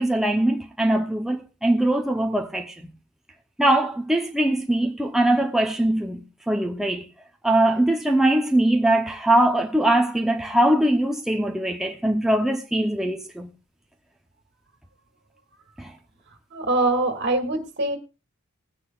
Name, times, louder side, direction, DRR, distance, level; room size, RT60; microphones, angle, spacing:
voice 1, 0.0-2.7 3.6-7.1 7.4-13.5 15.8-15.9, right 1 dB, ahead, 0.7 m, -22 dB
voice 2, 16.5-18.0, right 2 dB, 55° right, 2.0 m, -23 dB
20.5 x 9.6 x 2.4 m
head